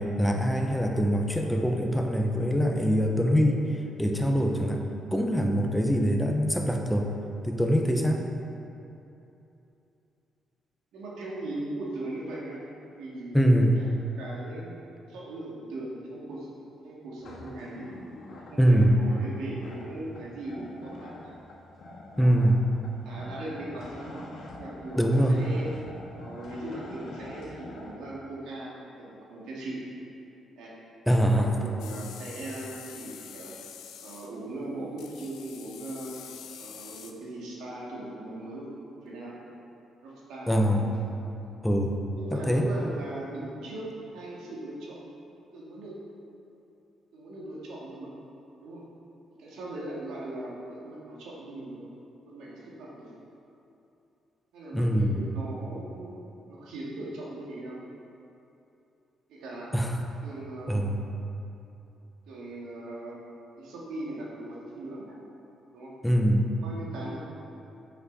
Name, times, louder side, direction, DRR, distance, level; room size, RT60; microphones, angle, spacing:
voice 1, 0.0-3.6 4.0-4.8 5.1-7.1 7.4-8.2 13.3-13.8 18.6-18.9 22.2-22.6 25.0-25.4 31.1-31.5 40.5-40.9 41.6-42.0 42.3-42.7 54.7-55.2 59.7-60.0 60.7-61.0 66.0-66.5, equal, 5° left, 2 dB, 0.8 m, -23 dB
voice 2, 10.9-12.6 13.0-13.4 13.8-14.8 15.1-16.5 16.8-17.9 18.4-21.3 22.1-22.3 23.0-24.3 24.5-25.7 26.2-29.8 30.6-30.7 31.2-33.5 34.0-36.2 36.6-38.7 39.0-39.4 40.0-40.9 42.2-45.0 45.5-46.0 47.1-48.1 48.6-48.9 49.4-51.8 52.3-53.1 54.5-56.2 56.5-57.8 59.3-59.7 60.2-60.8 62.3-63.2 63.6-65.2 65.7-65.9 66.5-67.2, right 1 dB, 85° right, -5 dB, 2.3 m, -39 dB
sound 1, 17.2-27.9, left 2 dB, 65° left, 2.0 m, -46 dB
sound 2, 31.8-34.3 35.0-37.1, left 8 dB, 85° left, 0.7 m, -46 dB
9.5 x 8.1 x 4.2 m, 2.8 s
cardioid pair, 90°, 0 cm